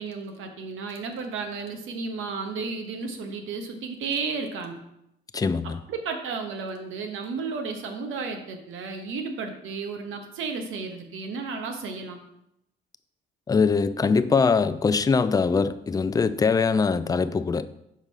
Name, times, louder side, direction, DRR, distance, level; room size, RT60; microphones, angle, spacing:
voice 1, 0.0-4.8 5.9-12.2, right 4 dB, 85° right, 1.1 m, -33 dB
voice 2, 5.3-5.8 13.5-17.8, left 5 dB, 20° left, 0.3 m, -22 dB
5.2 x 4.6 x 5.4 m
cardioid pair, 90°, 20 cm